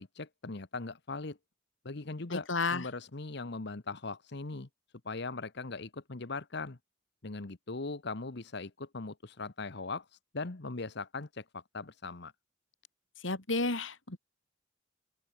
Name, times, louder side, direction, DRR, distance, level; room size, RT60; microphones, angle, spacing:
voice 1, 0.0-1.4 1.8-4.7 5.0-6.8 7.2-12.3, left 3 dB, 60° left, 1.2 m, -40 dB
voice 2, 2.3-2.9 13.2-14.2, left 3 dB, 85° left, 3.4 m, -32 dB
open air
head